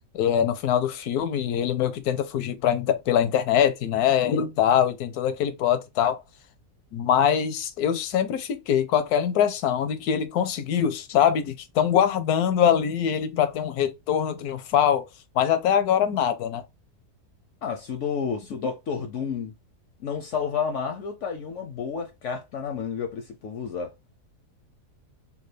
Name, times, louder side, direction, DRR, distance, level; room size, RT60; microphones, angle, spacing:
voice 1, 0.1-6.2 6.9-15.1 15.3-16.6, left 9 dB, 80° left, 1.1 m, -23 dB
voice 2, 17.6-19.5 20.0-23.9, left 6 dB, 65° left, 0.8 m, -30 dB
3.7 x 2.3 x 3.2 m
omnidirectional pair, 1.6 m